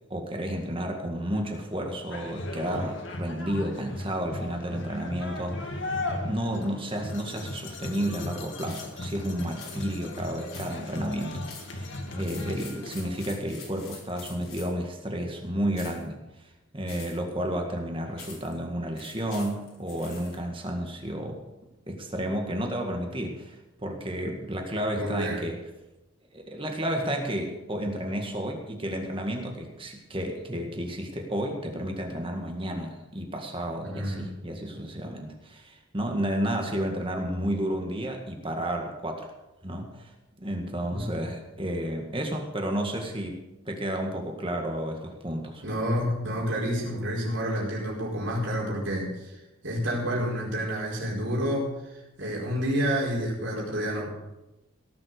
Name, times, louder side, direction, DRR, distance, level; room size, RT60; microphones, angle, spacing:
voice 1, 0.1-6.0 6.2-21.4 21.9-25.6 26.3-39.3 39.6-40.1 40.4-45.6, equal, 25° right, 2 dB, 1.8 m, -32 dB
sound 1, 2.1-13.3, left 2 dB, 65° left, 2.1 m, -36 dB
sound 2, 8.7-8.9 9.6-9.8 10.5-10.9 11.5-11.7 12.2-14.8 15.7-16.1 16.9-17.3 18.2-18.5 19.0-20.4, left 5 dB, 85° left, 4.6 m, -45 dB
voice 2, 24.9-25.4 33.8-34.3 40.9-41.2 45.6-49.4 49.6-51.7 52.2-54.1, equal, 65° right, -4 dB, 4.9 m, -29 dB
17.5 x 7.6 x 6.6 m, 0.98 s
head